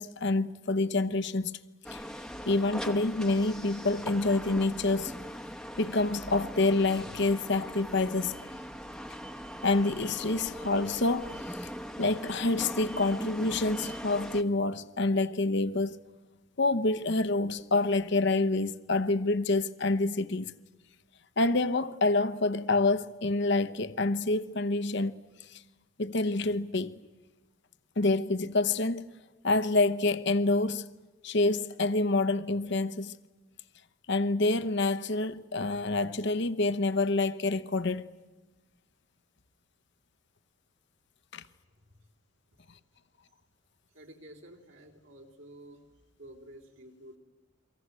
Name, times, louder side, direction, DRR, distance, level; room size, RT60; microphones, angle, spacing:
voice 1, 0.0-1.5 1.9-2.0 2.5-5.1 5.8-8.5 9.6-11.4 12.0-16.0 16.6-20.5 21.4-25.2 25.5-25.6 26.0-26.9 28.0-29.1 29.4-30.9 31.2-33.1 34.1-38.1 41.3-41.4, left 2 dB, 55° left, 1.0 m, -27 dB
sound 1, 1.8-14.4, equal, 5° left, 1.0 m, -40 dB
voice 2, 43.9-45.8 46.2-47.2, right 1 dB, 65° right, 3.6 m, -50 dB
29.5 x 24.0 x 8.2 m
head